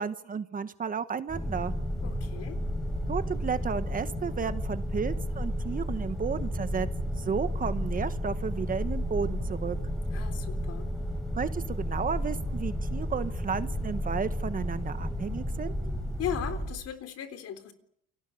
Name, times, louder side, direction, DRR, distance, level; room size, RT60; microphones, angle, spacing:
voice 1, 0.0-1.7 3.1-6.9 7.2-9.8 11.3-15.7, right 6 dB, 30° right, 11 dB, 1.2 m, -33 dB
sound 1, 1.3-16.7, equal, ahead, 7.8 m, -32 dB
voice 2, 2.0-2.6 10.1-10.9 16.2-17.7, left 9 dB, 55° left, 9 dB, 3.8 m, -37 dB
29.5 x 23.0 x 7.1 m, 0.71 s
cardioid pair, 150°, 29 cm